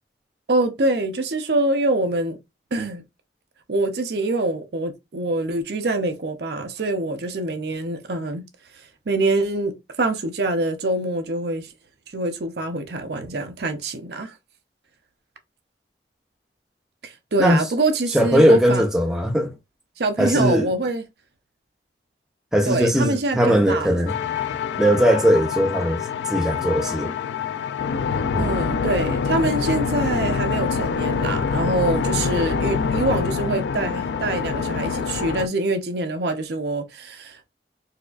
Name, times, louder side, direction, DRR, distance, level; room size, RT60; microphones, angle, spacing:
voice 1, 0.5-2.4 2.7-3.0 3.7-8.4 9.1-11.7 12.1-14.3 17.0-18.8 20.0-21.0 22.7-24.0 28.4-37.5, right 2 dB, 60° right, 0.6 m, -25 dB
voice 2, 18.1-19.5 20.2-20.7 22.5-24.2 24.8-26.0 26.3-27.1 28.3-28.4, equal, 5° right, 0.4 m, -19 dB
sound 1, 24.1-35.5, left 5 dB, 70° left, 0.3 m, -25 dB
4.1 x 2.4 x 2.4 m
head